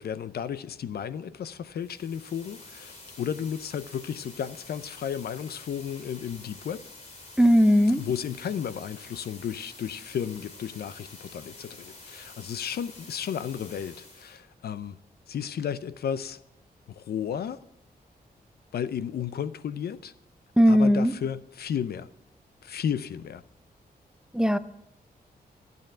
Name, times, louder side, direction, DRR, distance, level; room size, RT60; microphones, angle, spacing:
voice 1, 0.0-6.8 8.0-15.0 15.3-16.4 16.9-17.6 18.7-20.1 20.7-22.1 22.6-23.4, left 8 dB, 75° left, 0.6 m, -33 dB
sound 1, 1.7-14.4, left 2 dB, 45° left, 2.6 m, -48 dB
voice 2, 7.4-8.0 20.6-21.1 24.3-24.6, equal, 5° right, 0.4 m, -18 dB
13.0 x 9.2 x 8.9 m
wide cardioid pair, 170°, 16 cm